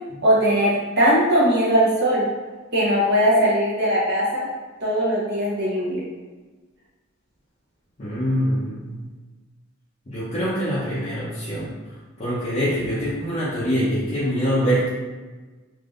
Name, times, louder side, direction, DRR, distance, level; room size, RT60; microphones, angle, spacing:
voice 1, 0.2-2.2 2.7-4.5 4.8-6.0, equal, 55° right, -6 dB, 1.0 m, -20 dB
voice 2, 8.0-9.0 10.1-11.7 12.2-14.9, equal, 30° left, -11 dB, 0.7 m, -24 dB
3.4 x 2.7 x 2.5 m, 1.3 s
head